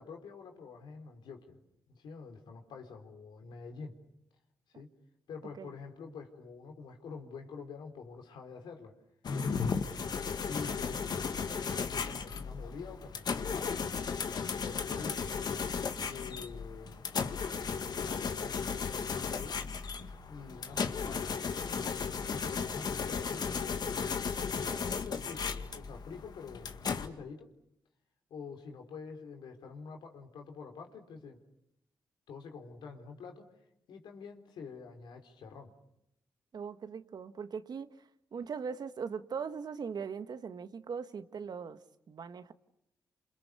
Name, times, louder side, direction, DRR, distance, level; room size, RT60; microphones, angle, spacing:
voice 1, 0.0-1.6 1.9-4.0 4.7-4.9 5.3-8.9 9.4-11.0 11.7-13.8 14.5-15.3 16.0-17.1 17.7-18.7 19.2-19.6 20.3-21.3 21.6-23.9 24.4-27.5 28.3-31.4 32.3-33.5 33.9-35.7, left 5 dB, 85° left, 4.1 m, -47 dB
sound 1, 9.2-27.1, left 5 dB, 65° left, 2.1 m, -35 dB
voice 2, 36.5-42.5, right 6 dB, 65° right, 1.7 m, -40 dB
29.0 x 27.5 x 7.0 m
cardioid pair, 55°, 8 cm